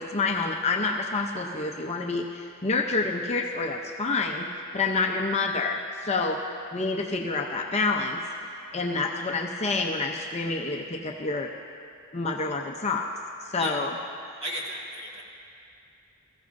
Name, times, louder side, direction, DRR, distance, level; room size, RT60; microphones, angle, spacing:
voice 1, 0.0-4.5 4.7-6.4 6.7-8.2 8.7-11.5 12.1-13.1 13.5-13.9, left 3 dB, 30° left, 1 dB, 0.7 m, -28 dB
voice 2, 14.4-15.2, right 1 dB, 30° right, -4 dB, 2.0 m, -35 dB
21.0 x 15.0 x 2.6 m, 2.5 s
head